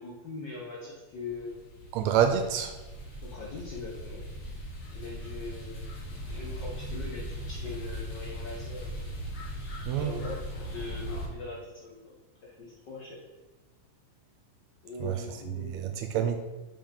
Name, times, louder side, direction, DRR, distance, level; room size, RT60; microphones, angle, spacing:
voice 1, 0.0-1.6 3.2-4.2 4.9-9.1 10.0-12.2 12.4-13.2 14.8-15.8, left 3 dB, 90° left, -4 dB, 0.9 m, -42 dB
sound 1, 1.1-11.3, equal, 65° left, 2.5 m, -39 dB
voice 2, 1.9-2.7 9.8-10.2 15.0-15.2 15.5-16.4, right 9 dB, 80° right, 6 dB, 1.6 m, -27 dB
7.1 x 5.2 x 3.8 m, 1.2 s
omnidirectional pair, 3.6 m